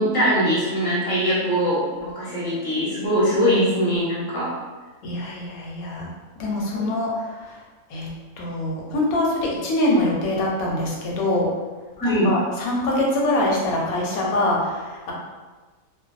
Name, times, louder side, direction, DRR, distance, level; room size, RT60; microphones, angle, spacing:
voice 1, 0.0-4.5 6.7-6.9 12.0-12.3, equal, 20° left, -9 dB, 0.7 m, -22 dB
voice 2, 5.0-6.1 6.4-7.6 7.9-8.1 8.4-11.5 12.0-15.1, left 1 dB, 75° left, -3 dB, 1.0 m, -24 dB
2.5 x 2.1 x 2.3 m, 1.3 s
omnidirectional pair, 1.6 m